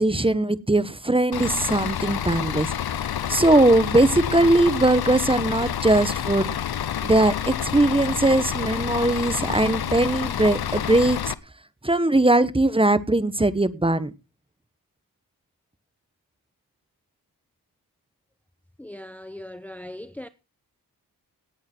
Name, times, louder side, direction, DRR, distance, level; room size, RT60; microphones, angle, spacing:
voice 1, 0.0-2.7 3.3-6.5 7.0-11.2 11.8-14.1, right 2 dB, 15° right, 1.2 m, -20 dB
Bus / Idling, 1.3-11.3, left 9 dB, 75° left, 0.9 m, -28 dB
voice 2, 18.8-20.3, left 1 dB, 5° left, 0.8 m, -39 dB
18.0 x 8.7 x 4.5 m
cardioid pair, 65°, 37 cm